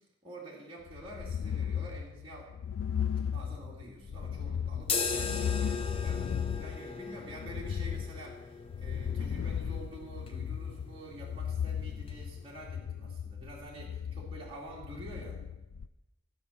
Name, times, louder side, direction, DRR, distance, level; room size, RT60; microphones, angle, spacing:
voice 1, 0.0-2.5 3.3-15.4, right 1 dB, 25° right, -4 dB, 2.4 m, -48 dB
sound 1, 0.9-15.9, left 8 dB, 85° left, 0.4 m, -36 dB
sound 2, 4.8-12.6, left 5 dB, 25° left, 0.7 m, -39 dB
14.0 x 5.5 x 7.3 m, 1.0 s
head